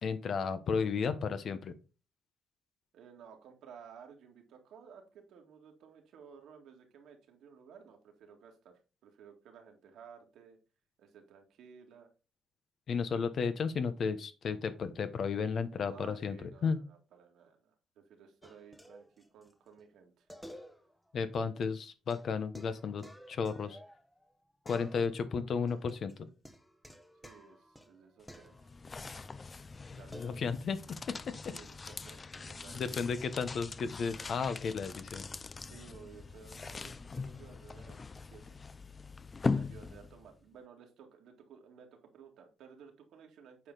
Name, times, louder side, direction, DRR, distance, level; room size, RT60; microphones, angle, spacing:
voice 1, 0.0-1.7 12.9-16.8 21.1-23.8 24.6-26.3 30.1-30.8 31.1-31.3 32.7-35.2, left 5 dB, 55° left, 11 dB, 1.1 m, -33 dB
voice 2, 2.9-10.6 11.0-12.1 15.8-20.3 27.2-28.7 29.9-30.2 31.5-33.2 35.6-38.7 39.5-43.7, right 7 dB, 80° right, 3 dB, 2.1 m, -56 dB
sound 1, 18.4-19.5 19.8-19.9 20.3-21.1 21.4-21.5 22.1-24.3 24.7-25.3 25.7-29.4 30.1-30.4, equal, 5° left, 1.1 m, -53 dB
sound 2, 28.2-40.4, left 4 dB, 30° left, 0.5 m, -41 dB
8.5 x 4.7 x 3.9 m, 0.32 s
cardioid pair, 90°, 0 cm